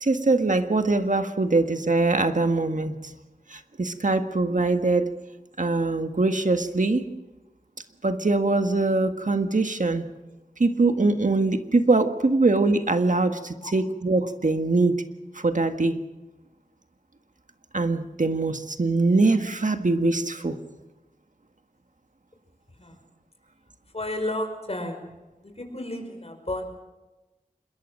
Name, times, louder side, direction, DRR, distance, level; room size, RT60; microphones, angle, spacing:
voice 1, 0.0-2.9 3.5-5.1 5.6-7.0 8.0-10.0 10.6-15.0 15.3-16.0 17.7-20.6, right 3 dB, 65° right, 7 dB, 1.6 m, -23 dB
voice 2, 23.9-25.1 25.4-26.7, left 1 dB, 45° left, 5 dB, 5.3 m, -32 dB
26.5 x 22.0 x 6.5 m, 1.1 s
wide cardioid pair, 55°, 14 cm